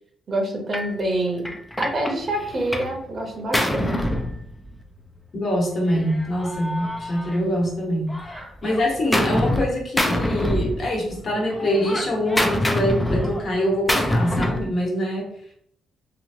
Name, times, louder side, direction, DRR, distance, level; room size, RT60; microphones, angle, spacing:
voice 1, 0.3-1.5 1.8-4.2 8.3-8.5, right 1 dB, 45° right, 0 dB, 0.9 m, -27 dB
Gunshot gunfire, 0.7-0.9 1.4-3.0 3.2-4.9 5.9-7.7 8.1-9.7 10.0-11.2 11.5-14.7, left 1 dB, 10° left, 0.4 m, -25 dB
voice 2, 5.3-8.2 8.6-15.3, equal, 50° left, -2 dB, 1.2 m, -24 dB
3.0 x 2.5 x 2.7 m, 0.65 s
cardioid pair, 90°, 0 cm